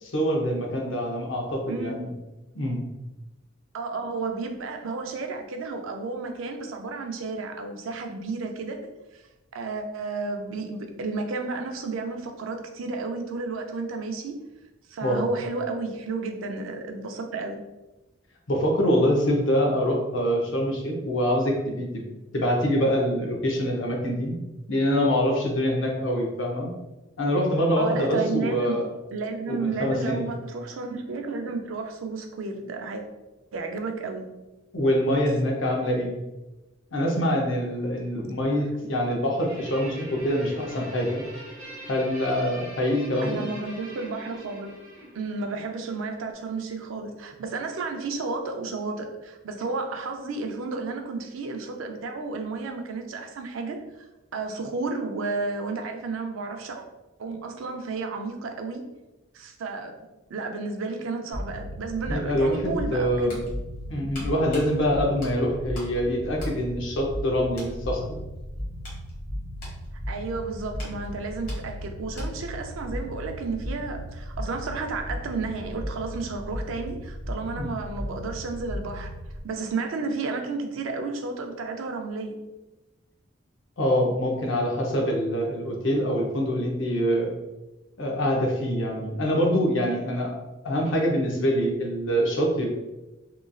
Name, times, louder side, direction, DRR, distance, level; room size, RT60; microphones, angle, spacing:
voice 1, 0.1-2.1 2.5-2.8 15.0-15.2 18.5-22.0 22.3-24.3 24.7-26.7 27.2-28.9 29.5-30.3 34.7-36.1 36.9-41.2 41.9-43.4 62.1-63.4 63.9-68.2 77.6-77.7 83.8-87.3 88.0-90.4 90.6-92.7, equal, 65° left, 0 dB, 0.6 m, -25 dB
voice 2, 1.7-2.0 3.7-9.2 9.5-14.4 14.9-17.6 27.8-33.0 33.5-34.3 43.2-44.8 45.1-54.1 54.3-56.8 57.2-58.8 59.3-59.9 60.3-63.4 70.1-79.1 79.4-82.4, right 3 dB, 75° right, 4 dB, 0.4 m, -32 dB
Guitar, 39.4-46.1, equal, 30° right, 1.1 m, -42 dB
sound 1, 61.3-79.4, equal, ahead, 0.9 m, -36 dB
sound 2, 63.3-66.0 66.3-67.2 67.5-67.8 68.3-72.6 72.9-73.0, left 1 dB, 45° left, 1.1 m, -47 dB
3.0 x 2.5 x 2.3 m, 1.0 s
head